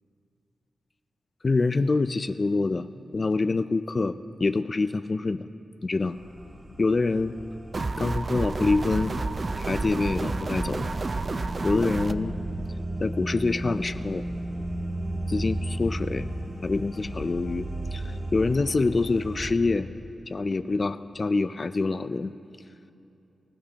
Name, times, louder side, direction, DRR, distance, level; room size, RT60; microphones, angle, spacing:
voice 1, 1.4-5.5 5.8-6.2 6.8-7.3 8.0-9.1 9.6-10.9 11.6-12.3 13.0-14.3 15.3-16.3 16.6-19.9 20.3-22.3, left 3 dB, 35° left, 11 dB, 0.4 m, -26 dB
sound 1, 6.0-19.5, right 1 dB, 15° right, 1.7 m, -35 dB
sound 2, 7.7-12.1, right 3 dB, 40° right, 0.4 m, -30 dB
25.5 x 15.5 x 2.9 m, 2.7 s
wide cardioid pair, 115°, 0 cm